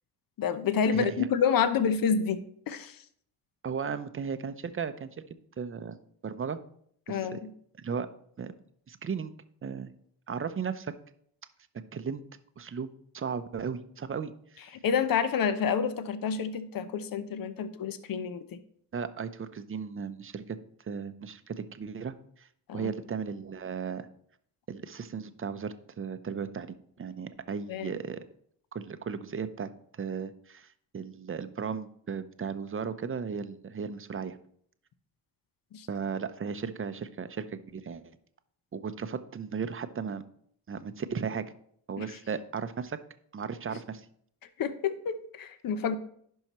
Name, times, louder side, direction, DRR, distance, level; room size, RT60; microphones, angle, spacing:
voice 1, 0.4-3.0 7.1-7.4 14.8-18.6 22.7-22.9 27.7-27.9 35.7-35.9 42.0-42.1 43.7-43.8 44.6-46.0, left 6 dB, 55° left, 12 dB, 0.8 m, -29 dB
voice 2, 0.9-1.3 3.6-5.1 5.6-6.0 6.2-6.6 7.1-7.4 7.8-8.1 8.4-8.5 8.9-9.3 9.6-9.9 10.3-10.9 11.9-12.2 12.6-14.3 14.6-14.7 18.9-20.6 20.9-22.5 22.7-24.1 24.7-28.2 28.7-29.7 30.0-30.7 30.9-34.4 35.9-38.1 38.7-40.2 40.7-41.5 41.9-43.0 43.3-44.1, right 6 dB, 30° right, 11 dB, 0.7 m, -35 dB
10.5 x 5.5 x 3.0 m, 0.65 s
supercardioid pair, 65°, 41 cm